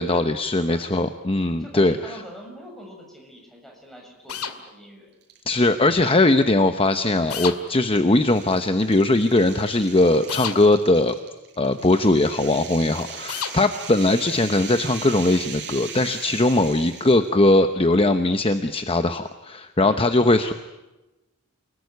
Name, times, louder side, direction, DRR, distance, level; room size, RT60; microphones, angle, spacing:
voice 1, 0.0-2.2 5.5-11.1 11.6-20.5, left 2 dB, 25° left, 9 dB, 0.9 m, -20 dB
voice 2, 1.5-5.1 16.3-16.5 19.8-20.0, equal, ahead, 0 dB, 6.8 m, -44 dB
sound 1, 4.3-4.6 7.3-7.6 10.3-10.6 13.3-13.6, left 7 dB, 80° left, 2.3 m, -29 dB
sound 2, 5.2-5.6 6.0-6.1 7.1-17.3, right 7 dB, 50° right, 5.6 m, -39 dB
29.5 x 19.5 x 9.5 m, 1.1 s
head